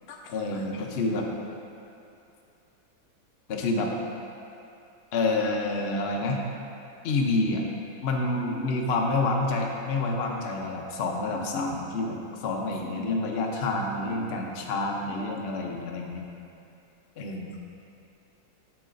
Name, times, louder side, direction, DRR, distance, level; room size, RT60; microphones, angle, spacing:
voice 1, 0.1-1.4 3.5-3.9 5.1-6.4 7.0-7.6 8.0-12.2 12.4-16.2 17.2-17.6, left 2 dB, 85° left, 0 dB, 0.5 m, -28 dB
8.7 x 7.2 x 2.5 m, 2.7 s
omnidirectional pair, 2.1 m